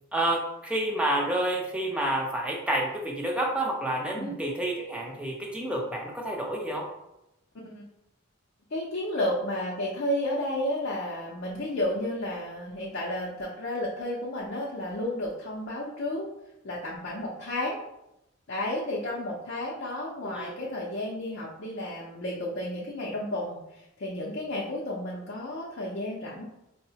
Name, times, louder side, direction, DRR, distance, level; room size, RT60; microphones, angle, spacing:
voice 1, 0.1-6.9 20.2-20.6, right 1 dB, 5° right, 0 dB, 0.5 m, -29 dB
voice 2, 8.7-16.3 16.6-17.8 18.5-26.4, left 1 dB, 55° left, -5 dB, 0.5 m, -32 dB
4.6 x 2.0 x 2.7 m, 0.87 s
head